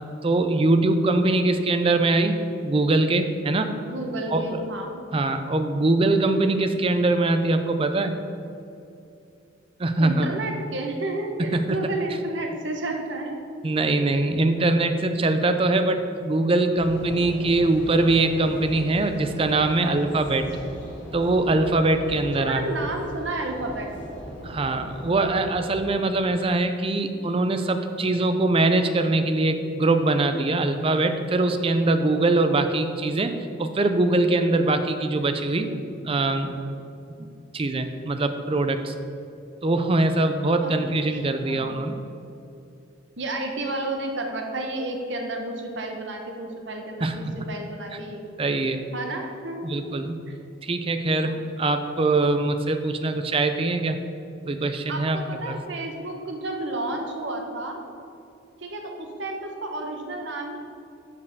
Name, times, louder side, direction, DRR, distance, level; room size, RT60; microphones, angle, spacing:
voice 1, 0.2-3.7 4.3-4.6 5.1-8.2 9.8-10.3 11.5-11.8 13.6-20.4 21.1-22.6 24.4-35.7 36.0-36.5 37.2-37.3 37.5-38.9 39.6-42.0 47.0-47.2 48.4-48.8 49.6-50.2 50.6-54.0 54.5-55.2 55.5-55.6, right 2 dB, 30° right, 8 dB, 0.5 m, -22 dB
voice 2, 3.9-5.0 10.0-13.5 22.4-23.9 40.6-40.7 41.1-41.8 43.2-48.3 48.9-49.8 50.3-50.4 51.2-51.3 54.9-57.8 58.6-60.6, right 2 dB, 70° right, 2 dB, 1.1 m, -31 dB
sound 1, 16.7-26.0, equal, 70° left, 2.0 m, -39 dB
6.7 x 5.4 x 6.7 m, 2.7 s
head